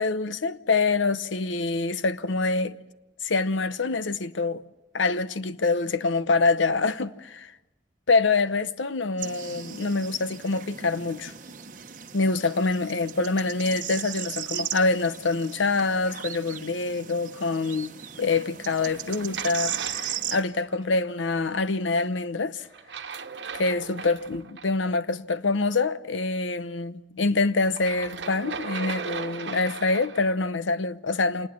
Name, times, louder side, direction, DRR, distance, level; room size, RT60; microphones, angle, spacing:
voice 1, 0.0-2.8 3.2-4.6 4.9-7.5 8.1-11.3 12.1-22.7 23.6-31.5, left 3 dB, 90° left, 0.9 m, -25 dB
sound 1, 9.2-20.4, right 9 dB, 45° right, 1.1 m, -37 dB
sound 2, 18.8-20.8 22.7-24.6 27.7-30.4, right 5 dB, 70° right, 1.2 m, -37 dB
26.5 x 20.0 x 7.6 m
head